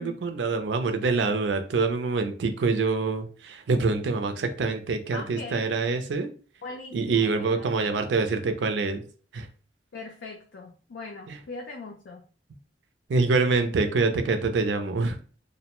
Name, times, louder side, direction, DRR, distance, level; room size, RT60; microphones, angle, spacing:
voice 1, 0.0-6.3 6.9-9.0 9.3-9.5 11.3-11.4 13.1-15.2, right 4 dB, 85° right, 6 dB, 0.4 m, -25 dB
voice 2, 5.1-5.7 6.6-8.0 9.9-12.2, left 3 dB, 85° left, 1 dB, 0.5 m, -40 dB
2.5 x 2.1 x 2.9 m, 0.40 s
head